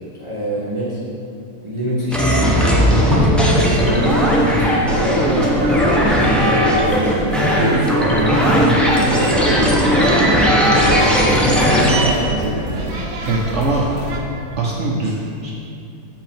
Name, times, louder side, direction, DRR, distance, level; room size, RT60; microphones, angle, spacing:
voice 1, 0.2-1.0 1.6-5.7 6.0-8.2 8.4-10.4 10.7-13.0, equal, 25° right, -8 dB, 0.8 m, -25 dB
sound 1, 2.1-12.1, equal, ahead, 0.4 m, -16 dB
sound 2, 3.8-14.2, right 2 dB, 85° right, 1.5 m, -28 dB
voice 2, 13.2-13.9 14.6-15.5, right 2 dB, 60° right, -2 dB, 0.8 m, -21 dB
7.1 x 5.6 x 4.4 m, 2.6 s
omnidirectional pair, 1.7 m